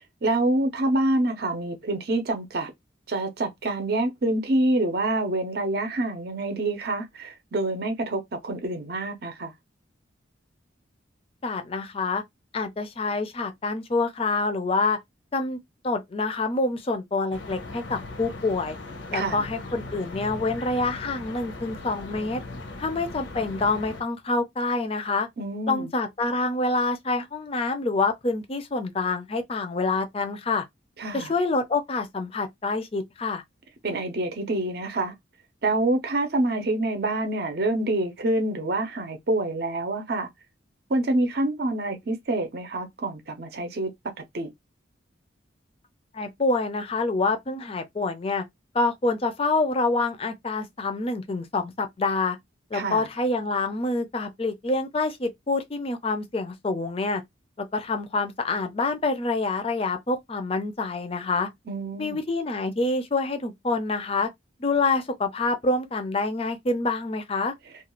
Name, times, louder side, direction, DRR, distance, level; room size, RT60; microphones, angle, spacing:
voice 1, 0.2-2.7 3.1-9.5 19.1-19.4 25.4-25.9 31.0-31.3 33.8-35.1 35.6-40.3 40.9-43.9 44.3-44.5 52.7-53.0 61.7-62.2, right 2 dB, 55° right, 0.6 m, -26 dB
voice 2, 11.4-12.2 12.5-15.0 15.3-15.6 15.8-18.8 19.1-22.4 22.8-25.3 25.7-30.6 31.1-33.4 46.1-48.4 48.7-52.4 52.7-57.2 57.6-61.5 62.0-64.3 64.6-67.5, left 3 dB, 30° left, 0.4 m, -26 dB
sound 1, 17.3-24.0, left 2 dB, 70° left, 0.7 m, -39 dB
2.4 x 2.3 x 3.0 m
head